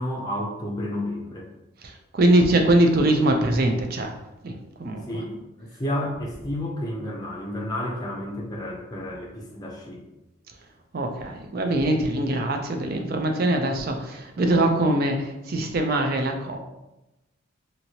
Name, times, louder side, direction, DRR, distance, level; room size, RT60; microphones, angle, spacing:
voice 1, 0.0-1.5 5.1-10.0, left 1 dB, 20° left, -2 dB, 0.5 m, -31 dB
voice 2, 2.1-4.1 4.4-4.5 4.8-5.0 10.9-16.6, right 1 dB, 45° right, 4 dB, 0.4 m, -22 dB
2.9 x 2.7 x 2.8 m, 0.97 s
head